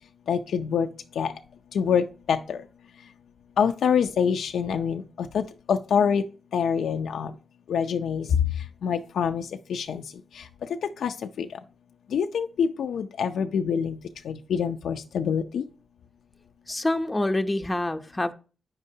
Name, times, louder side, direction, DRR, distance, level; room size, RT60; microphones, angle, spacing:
voice 1, 0.3-0.9 1.2-1.3 1.7-2.6 3.6-5.4 5.7-6.2 6.5-7.3 7.7-8.3 8.8-10.0 10.4-10.5 11.0-11.5 12.1-14.0 14.3-15.6, left 7 dB, 85° left, 0.4 m, -25 dB
voice 2, 16.7-18.3, left 1 dB, 20° left, 0.6 m, -26 dB
8.7 x 6.6 x 2.7 m
cardioid pair, 65°, 0 cm